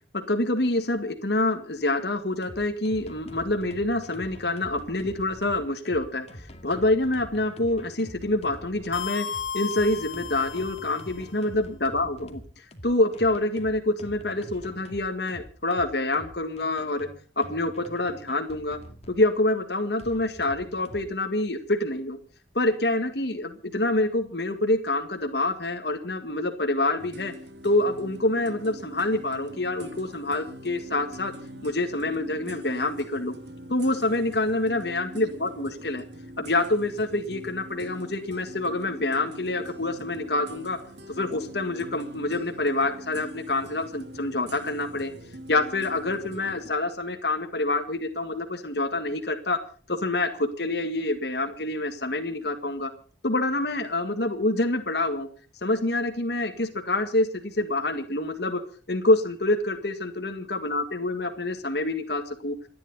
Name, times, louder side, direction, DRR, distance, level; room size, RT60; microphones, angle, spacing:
voice 1, 0.1-9.3 9.5-12.4 12.8-17.1 17.4-18.8 19.1-22.2 22.6-27.3 27.6-31.3 31.6-33.3 33.7-36.0 36.4-40.8 41.1-45.1 45.5-49.6 49.9-52.9 53.2-55.3 55.6-58.6 58.9-62.6, left 2 dB, 60° left, 6 dB, 1.8 m, -26 dB
sound 1, 2.3-19.3 20.0-21.2, equal, 35° left, 2.2 m, -45 dB
sound 2, 8.9-11.3, left 6 dB, 85° left, 1.2 m, -34 dB
sound 3, 27.0-46.7, equal, 65° right, 2.3 m, -43 dB
28.5 x 10.5 x 4.1 m, 0.43 s
head